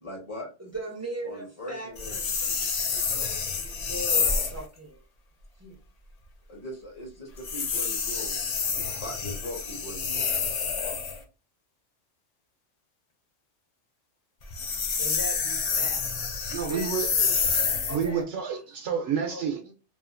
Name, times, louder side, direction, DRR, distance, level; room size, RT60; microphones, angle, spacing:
voice 1, 0.0-0.5 1.2-2.1 6.5-10.4, left 1 dB, 35° left, 0.7 m, -40 dB
voice 2, 0.6-3.1 3.5-5.0 5.6-5.8 15.0-16.3 16.6-18.2 19.3-19.7, right 2 dB, 20° right, 0.4 m, -39 dB
sound 1, 2.0-4.6 7.4-11.2 14.4-18.1, left 5 dB, 80° left, 0.3 m, -28 dB
voice 3, 16.5-17.1 17.5-19.6, right 7 dB, 70° right, 0.9 m, -29 dB
2.8 x 2.4 x 2.4 m
omnidirectional pair, 1.3 m